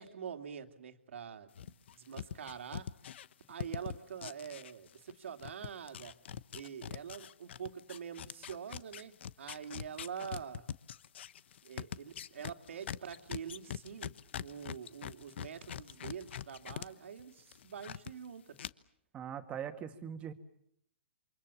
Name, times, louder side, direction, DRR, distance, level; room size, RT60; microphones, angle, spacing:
voice 1, 0.0-2.9 3.5-6.1 6.5-10.6 11.6-14.1 14.4-18.6, right 7 dB, 75° right, 7 dB, 2.8 m, -45 dB
sound 1, 1.6-5.1 5.4-16.9 17.2-18.1 18.6-18.7, left 9 dB, 60° left, 1.1 m, -43 dB
voice 2, 19.1-20.3, right 8 dB, 20° right, 7 dB, 2.1 m, -41 dB
28.5 x 26.5 x 7.2 m, 0.73 s
hypercardioid pair, 145°, 7 cm